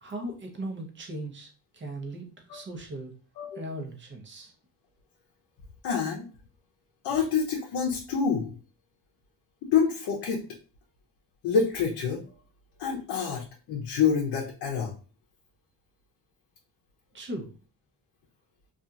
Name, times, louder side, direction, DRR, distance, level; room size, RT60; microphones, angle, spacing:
voice 1, 0.0-3.1 3.5-4.5 17.1-17.5, right 1 dB, 30° right, 3 dB, 0.7 m, -38 dB
voice 2, 5.8-6.3 7.0-8.5 9.7-10.4 11.4-12.2 12.8-14.9, left 6 dB, 75° left, -1 dB, 0.7 m, -27 dB
2.8 x 2.4 x 2.3 m, 0.38 s
cardioid pair, 115°, 40 cm